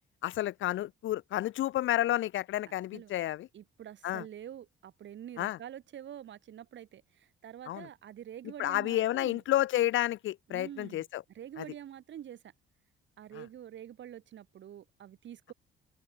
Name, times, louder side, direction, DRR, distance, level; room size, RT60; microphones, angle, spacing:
voice 1, 0.2-3.5 4.0-4.2 5.4-5.6 7.7-7.9 8.6-11.2 11.6-11.7 13.4-13.5, left 14 dB, 80° left, 1.1 m, -30 dB
voice 2, 2.7-3.1 3.5-9.4 10.5-11.1 11.3-12.4 13.2-15.5, right 10 dB, 65° right, 7.1 m, -46 dB
open air
cardioid pair, 90°, 20 cm